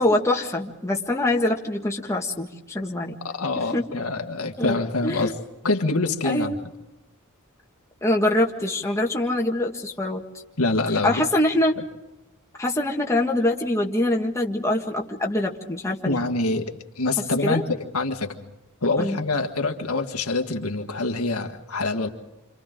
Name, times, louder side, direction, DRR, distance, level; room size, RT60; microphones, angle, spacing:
voice 1, 0.0-3.2 3.6-3.9 4.6-5.3 6.2-6.6 8.0-10.2 10.9-11.8 12.6-16.2 17.4-17.6 19.0-19.2, left 1 dB, 15° left, 0 dB, 1.7 m, -24 dB
voice 2, 3.2-5.4 5.6-6.5 10.6-11.2 16.1-17.7 17.9-18.5 18.8-22.1, left 3 dB, 85° left, 4 dB, 1.7 m, -25 dB
29.0 x 26.5 x 3.8 m, 1.0 s
head